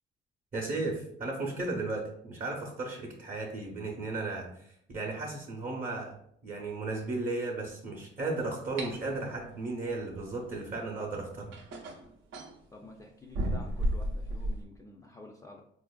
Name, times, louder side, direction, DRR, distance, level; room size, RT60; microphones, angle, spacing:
voice 1, 0.5-6.1 6.4-11.5, right 3 dB, 40° right, -1 dB, 0.7 m, -35 dB
sound 1, 8.8-8.9 10.8-10.9 11.5-12.6 13.3-14.6, equal, 80° right, 0.6 m, -32 dB
voice 2, 12.7-15.6, left 2 dB, 15° left, 0 dB, 0.4 m, -49 dB
4.2 x 2.5 x 2.2 m, 0.68 s
cardioid pair, 90°, 20 cm